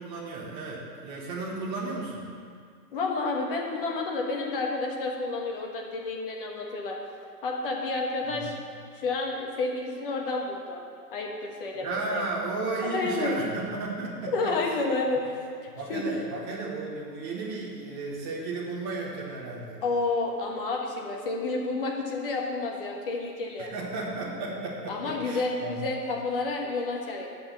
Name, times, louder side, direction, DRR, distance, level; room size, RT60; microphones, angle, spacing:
voice 1, 0.0-2.3 8.3-8.5 11.8-14.6 15.7-19.8 23.6-25.8, right 3 dB, 15° right, -4 dB, 1.1 m, -34 dB
voice 2, 2.9-7.0 7.4-8.5 8.9-10.8 11.1-12.2 12.8-13.3 14.3-15.3 15.9-16.1 19.8-23.7 24.9-27.3, left 3 dB, 35° left, 0 dB, 1.4 m, -30 dB
9.5 x 6.0 x 8.2 m, 2.2 s
hypercardioid pair, 165°, 49 cm